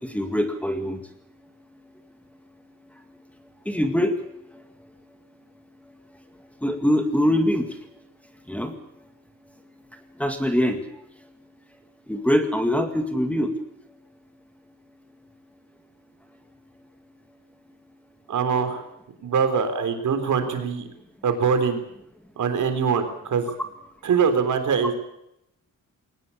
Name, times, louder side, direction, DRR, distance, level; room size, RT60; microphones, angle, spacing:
voice 1, 0.0-1.0 3.7-4.1 6.6-7.7 8.5-8.7 10.2-10.8 12.1-13.5, equal, 5° left, 6 dB, 2.0 m, -23 dB
voice 2, 18.3-18.9 19.2-20.9 21.2-21.8 22.4-23.5 24.0-24.9, right 6 dB, 65° right, 8 dB, 3.7 m, -23 dB
22.0 x 18.5 x 8.6 m, 0.81 s
wide cardioid pair, 160°, 33 cm